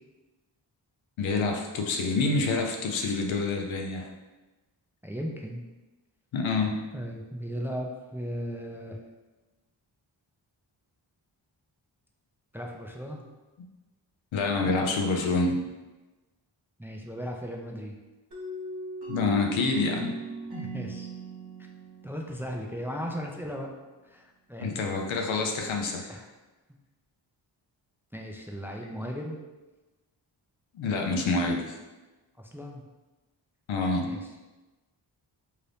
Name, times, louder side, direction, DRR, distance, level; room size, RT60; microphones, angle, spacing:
voice 1, 1.2-4.1 6.3-6.8 14.3-15.6 19.1-20.1 24.6-26.1 30.7-31.8 33.7-34.1, left 3 dB, 85° left, 2 dB, 0.6 m, -27 dB
voice 2, 5.0-5.6 6.9-9.0 12.5-13.2 16.8-18.0 20.6-21.1 22.0-23.7 24.0-24.8 26.1-26.3 28.1-29.4 32.4-32.8 34.0-34.3, equal, 5° right, 0 dB, 0.4 m, -36 dB
sound 1, 18.3-23.0, right 4 dB, 55° right, 1.3 m, -39 dB
2.8 x 2.5 x 3.3 m, 1.1 s
cardioid pair, 50°, 46 cm